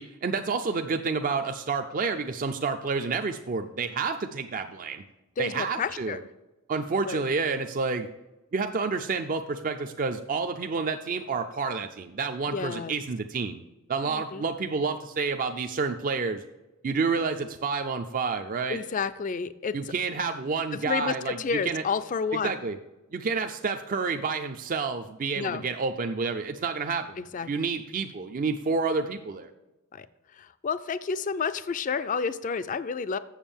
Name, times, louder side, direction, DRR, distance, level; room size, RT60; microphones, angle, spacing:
voice 1, 0.0-5.0 5.4-6.2 6.7-8.1 8.5-13.6 13.9-16.4 16.8-18.8 19.7-21.8 22.4-22.8 23.1-29.5, right 4 dB, 40° right, 6 dB, 0.5 m, -29 dB
voice 2, 5.4-6.2 7.1-7.2 12.5-12.9 14.0-14.4 18.7-19.8 20.9-22.5 25.4-25.6 27.2-27.5 29.9-30.1 30.4-33.2, left 5 dB, 40° left, 13 dB, 0.4 m, -30 dB
7.3 x 6.9 x 7.0 m, 1.1 s
head